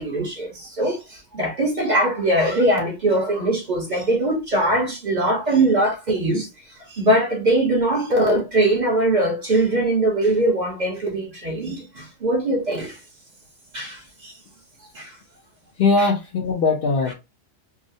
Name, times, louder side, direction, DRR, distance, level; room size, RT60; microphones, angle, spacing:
voice 1, 0.0-6.5 6.9-13.0 13.7-14.3 14.9-15.1, right 1 dB, 40° right, 1.1 m, -21 dB
voice 2, 15.8-17.1, left 3 dB, 60° left, 0.7 m, -20 dB
4.7 x 2.0 x 2.6 m
omnidirectional pair, 1.3 m